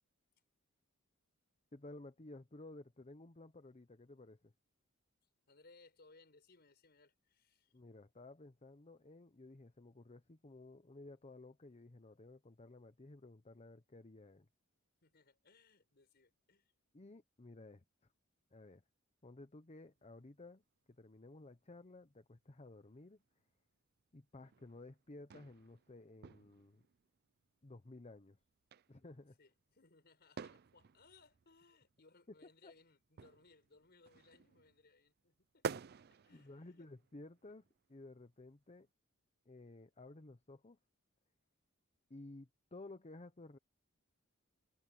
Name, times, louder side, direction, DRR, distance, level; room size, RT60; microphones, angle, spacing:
voice 1, 1.7-4.5 7.7-14.5 16.9-17.8 18.5-18.8 19.2-20.6 21.0-23.2 24.1-26.8 27.6-28.4 28.9-29.4 32.6-32.7 36.3-38.9 39.5-40.8 42.1-43.6, left 2 dB, 30° left, 0.8 m, -55 dB
voice 2, 5.5-7.7 15.0-16.7 29.4-36.9, left 3 dB, 50° left, 4.7 m, -66 dB
sound 1, 20.1-20.6 21.5-22.0 22.3-23.5 24.0-24.1 24.4-27.5 28.2-28.9 29.2-29.3 29.6-29.8 30.4-35.3 35.6-38.2 38.5-38.6, right 6 dB, 50° right, 0.4 m, -50 dB
head